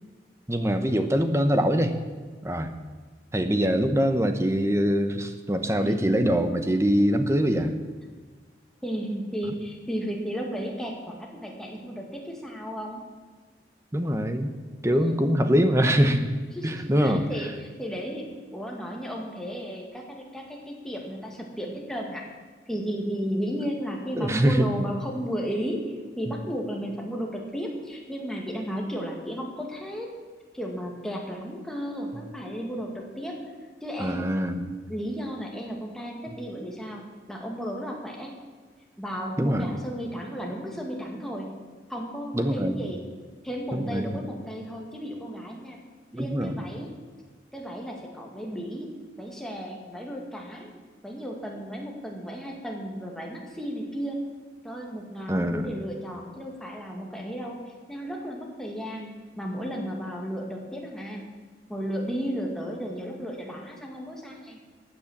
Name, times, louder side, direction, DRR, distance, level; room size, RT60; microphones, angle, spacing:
voice 1, 0.5-1.9 2.4-2.7 3.3-7.7 13.9-14.5 14.8-16.3 16.6-17.3 24.2-24.7 34.0-34.8 39.4-39.7 42.3-42.8 43.7-44.2 46.1-46.6 55.3-55.7, equal, 15° right, 8 dB, 0.9 m, -23 dB
voice 2, 5.8-6.3 8.8-13.0 14.9-15.3 16.5-22.3 22.7-25.9 26.2-30.1 30.5-33.4 33.8-34.4 34.9-38.3 39.0-41.5 41.9-43.0 43.4-45.8 46.1-46.9 47.5-48.9 49.2-50.7 51.0-54.3 54.6-59.1 59.4-61.2 61.7-64.6, equal, 5° left, -1 dB, 2.2 m, -34 dB
15.5 x 9.4 x 7.4 m, 1.5 s
head